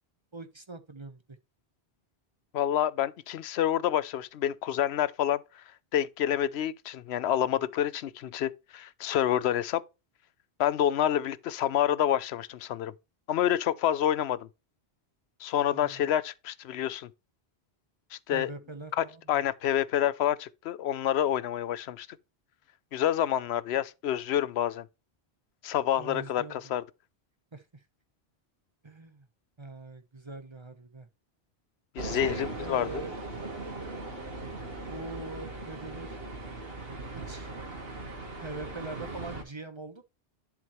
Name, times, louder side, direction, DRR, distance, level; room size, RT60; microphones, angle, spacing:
voice 1, 0.3-1.4 15.7-16.0 18.3-19.2 26.0-26.6 27.5-27.6 28.8-29.2 29.6-31.1 32.1-33.2 34.9-36.2 37.1-37.5 38.4-40.0, right 3 dB, 30° right, 0.9 m, -42 dB
voice 2, 2.5-5.6 5.9-9.8 10.6-12.9 13.3-14.5 15.4-17.1 18.1-18.5 19.0-22.1 22.9-24.8 25.6-26.8 31.9-33.0, left 11 dB, 85° left, 0.9 m, -28 dB
sound 1, 32.0-39.4, right 2 dB, 65° right, 2.0 m, -39 dB
11.0 x 4.9 x 3.0 m
omnidirectional pair, 1.1 m